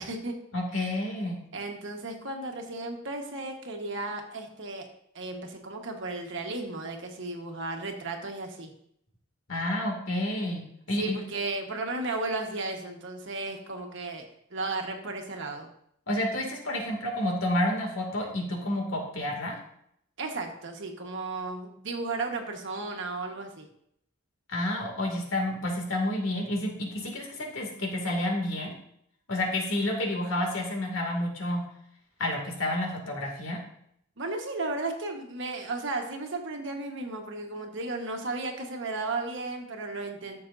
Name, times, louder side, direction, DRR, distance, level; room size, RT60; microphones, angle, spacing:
voice 1, 0.0-0.3 0.7-1.0 1.5-4.9 5.1-8.7 11.0-14.2 14.5-15.7 20.2-23.7 34.2-40.4, right 3 dB, 60° right, 3 dB, 1.4 m, -34 dB
voice 2, 0.5-1.4 9.5-11.2 16.1-19.5 24.5-28.7 29.3-31.6 32.2-33.6, left 1 dB, 70° left, 0 dB, 2.4 m, -30 dB
13.5 x 6.8 x 2.7 m, 0.71 s
head